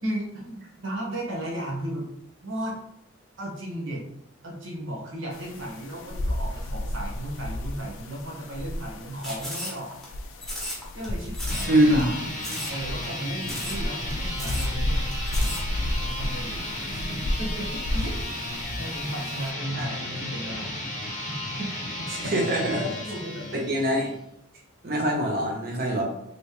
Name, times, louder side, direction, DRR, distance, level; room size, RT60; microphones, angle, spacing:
voice 1, 0.0-2.1 2.4-2.8 3.4-4.0 4.4-9.9 10.9-12.2 12.7-15.1 15.4-16.6 16.9-18.3 18.8-20.7 21.3-21.7 22.0-22.3 22.7-23.8, right 1 dB, 85° right, -1 dB, 1.2 m, -35 dB
sound 1, 5.3-19.5, left 1 dB, 85° left, 0.5 m, -32 dB
sound 2, 9.2-10.1 10.4-11.1 11.3-11.7 12.0-12.1 12.4-12.8 13.0-13.1 13.4-13.8 14.1-14.2 14.4-14.7 15.1-15.6, left 1 dB, ahead, 0.8 m, -35 dB
sound 3, 11.4-24.2, left 1 dB, 35° left, 0.7 m, -34 dB
voice 2, 11.7-12.1 19.8-20.0 22.1-22.8 23.5-24.1 24.8-26.0, right 1 dB, 50° right, 0 dB, 0.8 m, -23 dB
3.2 x 2.9 x 3.0 m, 0.79 s
head